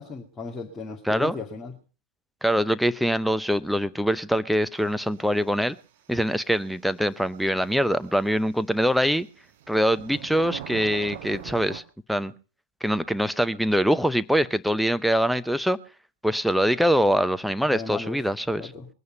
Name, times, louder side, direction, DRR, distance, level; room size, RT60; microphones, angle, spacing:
voice 1, 0.0-1.7 17.7-18.2 18.6-18.9, left 4 dB, 15° left, -2 dB, 2.3 m, -35 dB
voice 2, 2.4-5.8 6.1-9.3 9.7-11.8 12.1-12.3 12.8-15.8 16.2-18.6, equal, ahead, 12 dB, 0.7 m, -23 dB
sound 1, 7.1-7.2 9.3-11.8, right 10 dB, 55° right, 1.4 m, -39 dB
21.5 x 9.5 x 5.5 m, 0.37 s
figure-of-eight pair, 90°, 0 cm